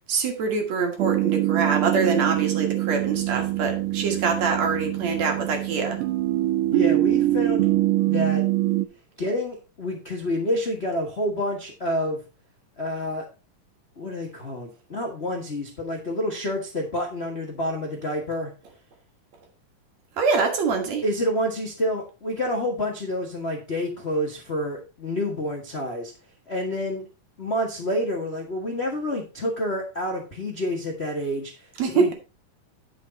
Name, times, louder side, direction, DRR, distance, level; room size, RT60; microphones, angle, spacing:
voice 1, 0.1-6.0 20.2-21.0 31.8-32.1, right 4 dB, 60° right, 4 dB, 2.5 m, -24 dB
sound 1, 1.0-8.9, right 16 dB, 90° right, 2.2 m, -24 dB
voice 2, 6.7-7.7 8.1-8.4 9.2-12.2 12.8-13.3 14.0-18.5 21.0-26.1 26.5-27.1 27.4-32.1, left 1 dB, 35° left, 0 dB, 1.0 m, -28 dB
9.7 x 6.5 x 4.0 m, 0.31 s
omnidirectional pair, 3.7 m